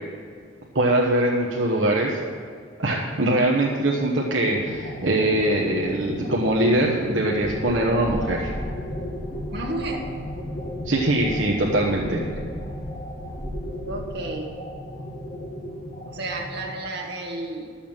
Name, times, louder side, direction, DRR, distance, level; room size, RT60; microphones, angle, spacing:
voice 1, 0.7-2.2 2.8-8.5 10.8-12.2, right 1 dB, 75° right, -2 dB, 1.2 m, -22 dB
sound 1, 4.5-16.7, left 1 dB, 45° left, 1.5 m, -35 dB
Train, 7.3-14.2, equal, 25° left, 2.1 m, -36 dB
voice 2, 9.5-10.1 13.9-14.5 16.1-17.8, right 2 dB, 60° right, 0 dB, 1.8 m, -31 dB
12.0 x 7.1 x 7.2 m, 2.1 s
head